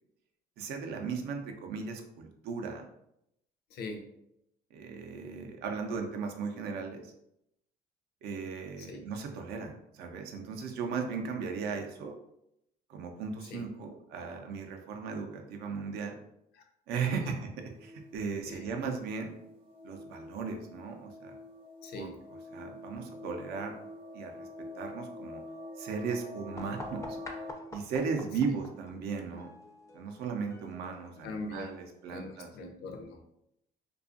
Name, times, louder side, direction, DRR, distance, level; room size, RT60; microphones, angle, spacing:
voice 1, 0.6-2.9 4.7-7.1 8.2-12.1 12.9-16.1 16.9-19.4 19.8-21.4 22.0-22.1 22.5-23.7 24.1-24.5 24.8-25.4 25.8-27.2 27.7-29.5 29.9-32.5, right 5 dB, 75° right, 4 dB, 0.5 m, -36 dB
voice 2, 3.7-4.0 8.8-9.0 13.5-13.6 16.5-16.6 17.0-17.3 18.5-18.7 21.8-22.2 31.2-31.8 32.1-33.2, left 2 dB, 70° left, 3 dB, 0.5 m, -42 dB
sound 1, 17.6-27.5, left 2 dB, 30° right, 0.7 m, -46 dB
sound 2, 26.6-32.1, left 2 dB, 20° left, 0.4 m, -48 dB
2.5 x 2.3 x 2.4 m, 0.80 s
cardioid pair, 110°, 17 cm